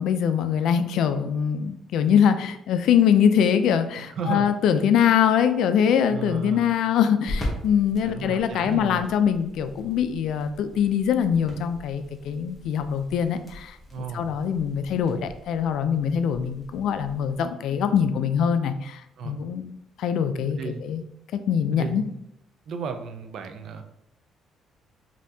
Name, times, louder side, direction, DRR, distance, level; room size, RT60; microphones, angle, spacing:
voice 1, 0.0-19.7 20.0-21.0 21.3-22.0, left 8 dB, 70° left, 10 dB, 0.3 m, -23 dB
voice 2, 4.2-4.5 6.1-6.7 8.0-9.1 13.9-14.3 19.2-19.4 20.6-20.8 21.7-22.1 22.7-23.8, right 5 dB, 50° right, 7 dB, 0.4 m, -33 dB
sound 1, 7.3-17.4, left 1 dB, 10° left, 0.9 m, -40 dB
5.3 x 2.7 x 2.7 m, 0.78 s
cardioid pair, 160°, 0 cm